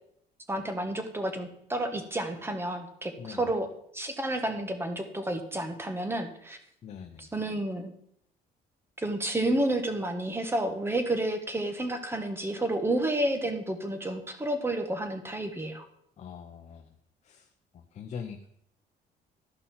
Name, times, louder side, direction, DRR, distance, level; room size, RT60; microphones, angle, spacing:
voice 1, 0.5-3.7 3.9-6.6 7.2-7.9 9.0-15.9, right 1 dB, 15° right, 7 dB, 1.4 m, -30 dB
voice 2, 6.8-7.3 16.2-16.9 17.2-17.5 17.7-18.5, left 7 dB, 45° left, 4 dB, 0.8 m, -42 dB
12.5 x 5.5 x 4.3 m, 0.71 s
cardioid pair, 110°, 17 cm